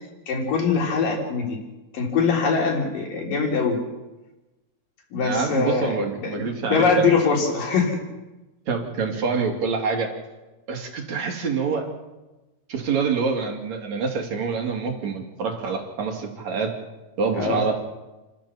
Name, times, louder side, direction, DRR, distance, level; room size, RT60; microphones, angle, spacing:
voice 1, 0.3-1.6 1.9-3.8 5.1-6.0 6.2-8.0 17.3-17.6, left 4 dB, 55° left, 1 dB, 5.1 m, -22 dB
voice 2, 5.2-7.3 8.7-10.1 10.7-11.9 12.7-16.7 17.2-17.7, right 5 dB, 45° right, 2 dB, 3.5 m, -26 dB
30.0 x 13.5 x 7.1 m, 1.1 s
omnidirectional pair, 4.8 m